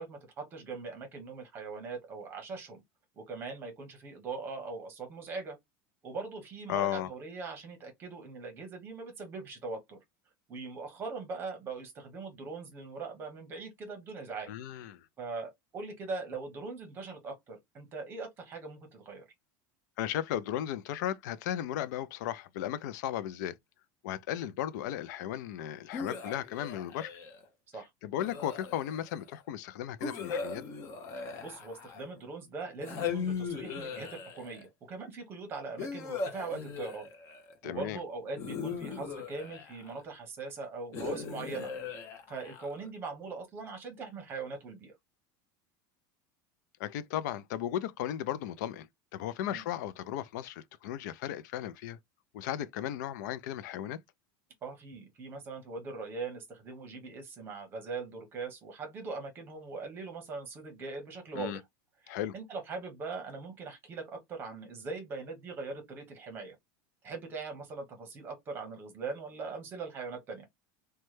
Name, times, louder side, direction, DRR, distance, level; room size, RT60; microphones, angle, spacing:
voice 1, 0.0-2.8 3.2-5.6 6.0-10.0 10.5-14.5 15.2-19.2 27.7-27.9 31.2-37.1 37.6-41.7 42.3-44.9 49.4-49.6 54.6-61.6 62.0-66.6 67.0-70.4, right 4 dB, 20° right, 0.9 m, -41 dB
voice 2, 6.7-7.1 14.5-15.0 20.0-23.6 24.0-27.1 28.0-30.6 37.6-38.0 46.8-48.9 49.1-52.0 52.3-54.0 61.3-61.6 62.1-62.3, left 11 dB, 70° left, 0.4 m, -35 dB
sound 1, 25.9-27.4 28.2-29.1 30.0-32.2 32.8-34.7 35.8-37.5 38.4-40.0 40.9-42.9, left 5 dB, 30° left, 0.6 m, -39 dB
3.1 x 2.2 x 3.0 m
supercardioid pair, 180°, 10 cm